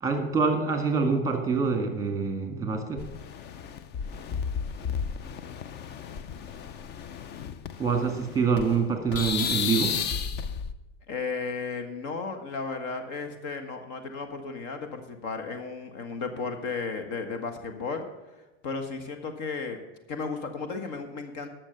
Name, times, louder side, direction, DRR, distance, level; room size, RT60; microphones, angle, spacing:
voice 1, 0.0-3.0 7.8-9.9, right 5 dB, 10° right, 4 dB, 2.0 m, -26 dB
sound 1, 3.0-8.8 9.1-10.7, left 7 dB, 30° left, 0.5 m, -33 dB
voice 2, 6.0-6.5 11.1-18.0 18.6-19.8 20.1-21.5, left 4 dB, 50° left, 6 dB, 1.5 m, -34 dB
11.5 x 6.5 x 6.7 m, 1.1 s
hypercardioid pair, 115°, 37 cm